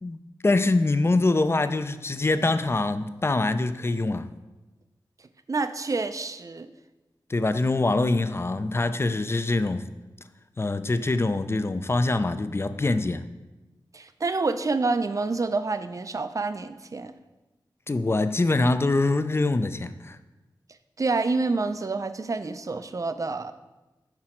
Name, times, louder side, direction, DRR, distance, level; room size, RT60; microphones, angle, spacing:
voice 1, 0.0-4.3 7.3-9.9 10.6-13.2 17.9-20.2, left 2 dB, 30° left, 11 dB, 0.4 m, -24 dB
voice 2, 5.5-6.7 13.9-17.1 21.0-23.5, right 3 dB, 40° right, 11 dB, 0.4 m, -28 dB
5.9 x 4.8 x 4.4 m, 1.1 s
wide cardioid pair, 60°, 8 cm